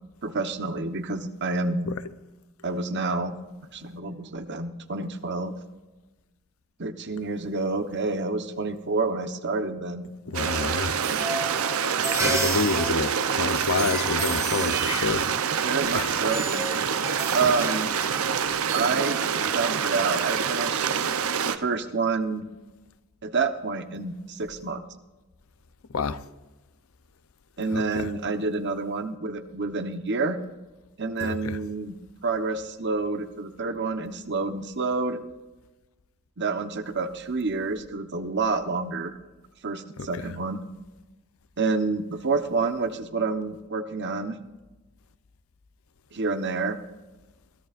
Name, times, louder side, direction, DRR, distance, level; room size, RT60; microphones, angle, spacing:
voice 1, 0.2-1.9 2.6-3.4 3.7-5.5 6.8-10.1 15.6-16.4 17.3-17.9 18.7-19.2 19.5-21.1 21.5-22.5 23.2-24.8 27.6-30.4 31.0-32.0 32.2-35.2 36.4-39.1 39.6-40.6 41.6-44.4 46.1-46.8, right 4 dB, 55° right, 1.1 m, -28 dB
voice 2, 10.3-11.0 12.1-15.3 15.9-16.1 17.4-17.5 25.9-26.2 27.7-28.1 31.2-31.6 40.0-40.4, left 4 dB, 75° left, 0.7 m, -29 dB
sound 1, 10.3-19.8, right 2 dB, 15° right, 1.9 m, -34 dB
Stream, 10.3-21.6, right 7 dB, 80° right, 0.7 m, -26 dB
22.0 x 14.0 x 2.6 m
head